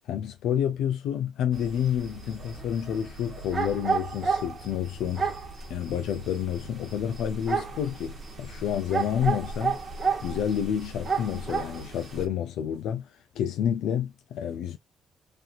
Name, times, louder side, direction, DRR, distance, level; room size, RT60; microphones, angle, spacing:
voice 1, 0.0-5.3 5.7-9.8 10.2-14.8, left 9 dB, 85° left, 0.4 m, -29 dB
sound 1, 1.5-12.3, right 5 dB, 45° right, 1.0 m, -32 dB
3.1 x 2.4 x 2.6 m
cardioid pair, 90°, 0 cm